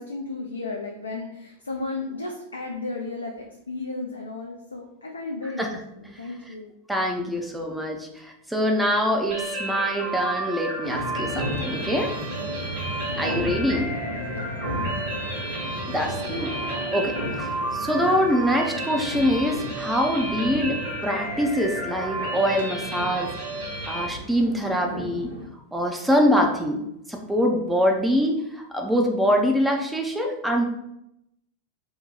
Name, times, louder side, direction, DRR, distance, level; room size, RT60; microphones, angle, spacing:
voice 1, 0.0-6.7 13.2-13.4 13.8-15.2, left 3 dB, 75° left, 0 dB, 0.4 m, -34 dB
voice 2, 5.4-5.8 6.9-12.1 13.2-13.9 15.9-23.3 23.9-25.3 25.7-26.8 27.1-30.6, equal, 5° right, 2 dB, 0.5 m, -24 dB
sound 1, 9.3-24.1, right 1 dB, 55° right, 1.0 m, -32 dB
sound 2, 10.8-25.5, equal, 85° right, 0.7 m, -34 dB
2.8 x 2.2 x 3.9 m, 0.82 s
figure-of-eight pair, 90°, 0 cm